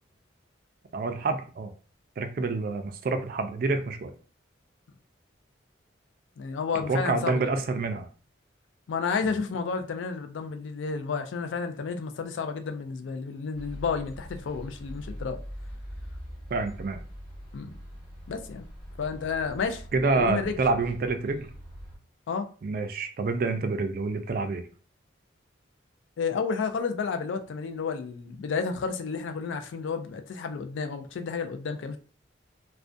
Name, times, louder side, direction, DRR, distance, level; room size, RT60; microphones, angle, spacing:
voice 1, 0.9-1.7 2.2-4.1 6.9-8.1 9.2-9.4 16.5-17.0 19.9-21.5 22.6-24.6, right 3 dB, 50° right, 0.3 m, -27 dB
voice 2, 6.4-7.5 8.9-15.4 17.5-17.7 18.3-18.6 19.0-19.8 20.1-20.6 22.3-22.5 26.2-32.0, left 5 dB, 75° left, 0.3 m, -31 dB
sound 1, 13.5-22.0, equal, 25° left, 0.8 m, -43 dB
2.3 x 2.1 x 2.5 m
head